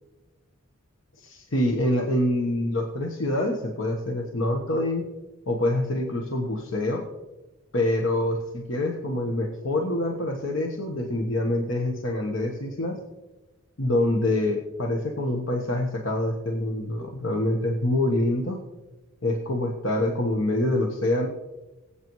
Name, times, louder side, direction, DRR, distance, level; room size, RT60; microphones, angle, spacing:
voice 1, 1.2-5.1 5.5-7.0 7.7-13.0 13.8-18.6 19.2-21.3, left 1 dB, 70° left, 2 dB, 1.2 m, -26 dB
22.0 x 8.4 x 3.1 m, 1.1 s
head